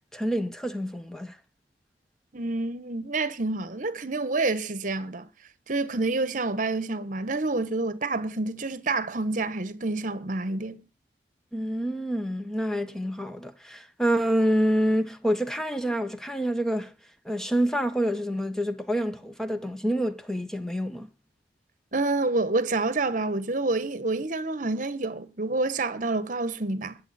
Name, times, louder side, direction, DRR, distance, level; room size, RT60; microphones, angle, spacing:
voice 1, 0.1-1.4 11.5-16.9 17.2-21.1, equal, 5° left, 1.2 m, -27 dB
voice 2, 2.3-5.3 5.7-10.8 21.9-27.0, right 3 dB, 45° right, 1.2 m, -28 dB
22.0 x 7.5 x 4.2 m
head